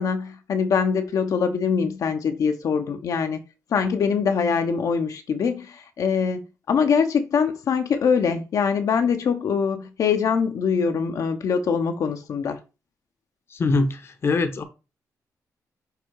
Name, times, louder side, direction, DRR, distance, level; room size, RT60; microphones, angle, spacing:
voice 1, 0.0-3.4 3.7-12.6, left 6 dB, 65° left, 0.9 m, -23 dB
voice 2, 13.5-14.6, left 3 dB, 40° left, 0.9 m, -23 dB
6.8 x 3.7 x 4.7 m
wide cardioid pair, 135°, 6 cm